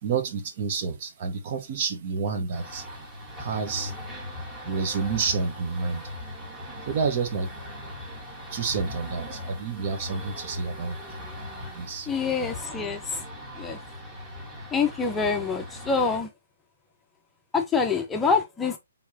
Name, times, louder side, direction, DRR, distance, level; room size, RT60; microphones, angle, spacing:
voice 1, 0.0-2.8 3.4-3.9 4.6-6.1 6.9-7.5 8.5-11.0 11.7-12.1, right 5 dB, 45° right, 1.3 m, -29 dB
sound 1, 2.5-16.2, left 1 dB, 10° right, 1.7 m, -39 dB
voice 2, 12.1-13.2 13.6-13.8 14.7-16.3 17.5-18.8, left 5 dB, 10° left, 0.7 m, -26 dB
4.5 x 3.6 x 2.8 m
hypercardioid pair, 135°, 0 cm